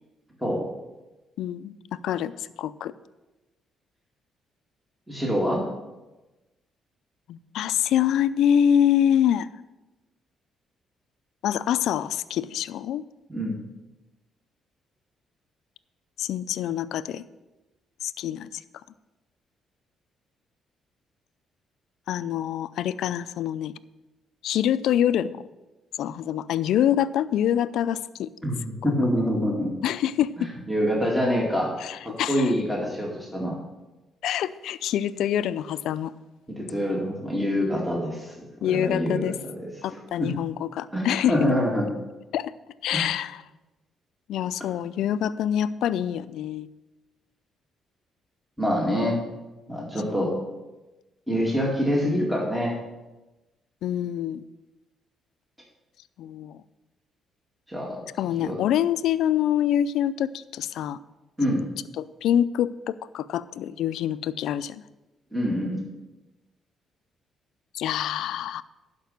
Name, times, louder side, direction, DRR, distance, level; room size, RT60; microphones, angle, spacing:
voice 1, 1.4-1.7 2.0-2.9 7.3-9.5 11.4-13.0 16.2-17.2 18.0-18.5 22.1-23.7 24.4-25.4 26.0-28.3 29.8-30.5 31.8-32.5 34.2-36.1 38.6-39.3 39.8-41.4 42.3-42.5 42.8-43.4 44.3-46.7 50.1-50.2 53.8-54.4 56.2-56.6 58.2-61.0 61.5-61.7 62.0-64.8 67.7-68.6, left 10 dB, 80° left, 15 dB, 0.4 m, -25 dB
voice 2, 5.1-5.7 13.3-13.7 28.4-28.6 28.8-29.8 30.4-31.7 32.0-33.6 36.5-38.3 38.6-39.7 40.2-40.3 40.9-41.9 42.9-43.0 48.6-49.2 49.7-50.4 51.3-52.7 57.7-58.0 58.4-58.6 61.4-61.6 65.3-65.8, equal, 5° right, -3 dB, 2.2 m, -25 dB
11.5 x 5.3 x 6.5 m, 1.1 s
cardioid pair, 90°, 0 cm